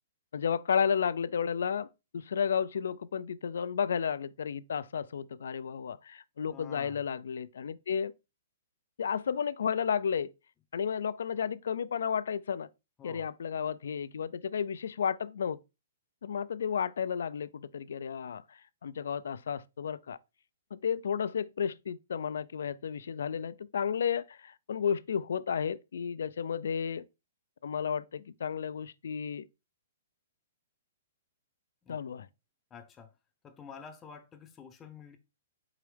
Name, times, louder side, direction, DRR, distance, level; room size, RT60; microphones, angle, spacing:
voice 1, 0.3-1.9 2.1-8.1 9.0-10.3 10.7-12.7 13.0-15.6 16.2-20.2 20.7-27.0 27.6-29.5 31.9-32.3, left 7 dB, 80° left, 0.3 m, -32 dB
voice 2, 6.5-7.0 13.0-13.3 31.8-32.0 32.7-33.1 33.4-35.2, left 6 dB, 15° left, 0.6 m, -49 dB
4.8 x 3.0 x 3.3 m
hypercardioid pair, 165°, 0 cm